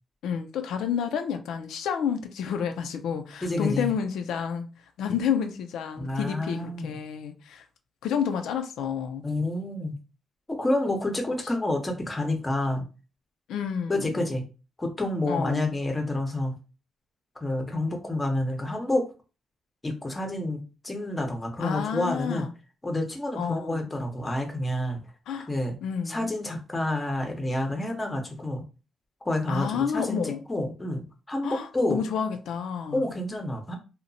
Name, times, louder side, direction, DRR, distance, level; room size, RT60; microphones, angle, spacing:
voice 1, 0.2-4.7 5.0-7.6 8.0-9.2 13.5-14.1 15.3-15.8 21.6-22.5 23.3-23.9 25.3-25.5 25.8-26.3 29.5-30.4 31.4-33.1, left 7 dB, 90° left, 0.3 m, -30 dB
voice 2, 3.4-3.9 6.0-7.0 9.2-10.0 10.5-12.8 13.9-14.4 14.8-16.5 17.4-19.0 19.8-22.5 22.8-25.0 25.5-25.7 26.1-28.6 29.2-30.2 30.5-32.0 32.9-33.8, left 1 dB, 15° left, 0.6 m, -29 dB
2.8 x 2.1 x 2.6 m
cardioid pair, 120°, 0 cm